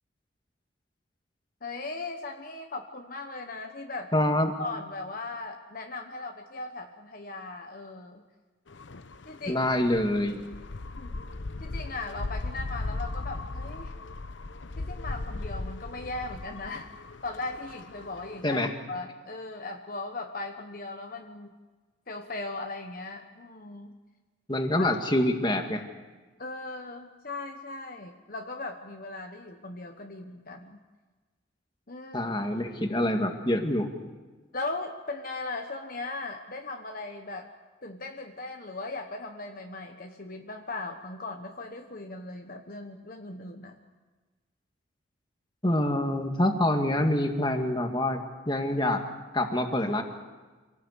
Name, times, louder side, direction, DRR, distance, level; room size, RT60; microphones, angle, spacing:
voice 1, 1.6-4.1 4.6-8.2 9.3-9.6 11.0-11.2 11.6-13.9 14.8-16.9 17.2-18.6 18.9-21.5 22.1-23.9 24.8-25.0 26.4-30.8 31.9-32.3 34.5-37.5 37.8-43.7, left 3 dB, 45° left, 4 dB, 1.2 m, -38 dB
voice 2, 4.1-4.5 9.5-10.4 18.4-18.7 24.5-25.8 32.1-33.9 45.6-49.0 49.3-50.0, left 1 dB, 25° left, 4 dB, 2.0 m, -26 dB
sound 1, 8.7-18.7, left 2 dB, 70° left, 0.8 m, -38 dB
26.0 x 17.5 x 8.3 m, 1.3 s
head